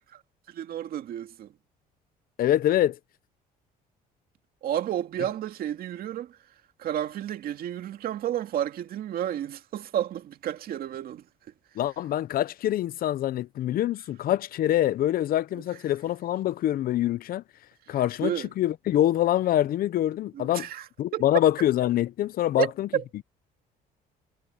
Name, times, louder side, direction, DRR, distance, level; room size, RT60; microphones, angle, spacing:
voice 1, 0.5-1.5 4.6-6.4 6.8-11.2 17.9-18.5 20.3-20.9 21.1-21.2 22.6-23.0, right 11 dB, 60° right, 2.4 m, -31 dB
voice 2, 2.4-3.0 11.8-17.4 17.9-20.7 21.0-22.9, left 12 dB, 60° left, 0.7 m, -25 dB
cardioid pair, 110°, 17 cm